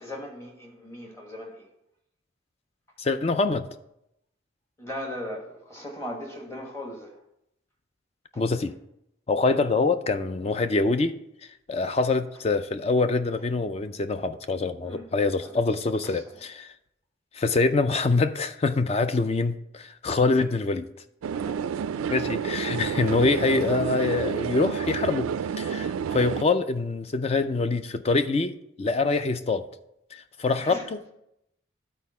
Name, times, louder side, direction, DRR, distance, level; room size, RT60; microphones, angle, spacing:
voice 1, 0.0-1.7 4.8-7.2 8.3-8.4 14.8-15.0 15.4-15.6 16.0-16.2 21.3-21.6 30.6-30.9, left 1 dB, 15° left, -1 dB, 1.4 m, -38 dB
voice 2, 3.0-3.7 8.4-8.8 9.3-11.2 11.7-16.7 17.3-20.9 22.1-25.3 25.6-29.7 30.1-31.1, left 3 dB, 30° left, 10 dB, 0.3 m, -25 dB
sound 1, 21.2-26.4, right 7 dB, 90° right, 0.3 m, -29 dB
12.0 x 4.2 x 4.2 m, 0.82 s
head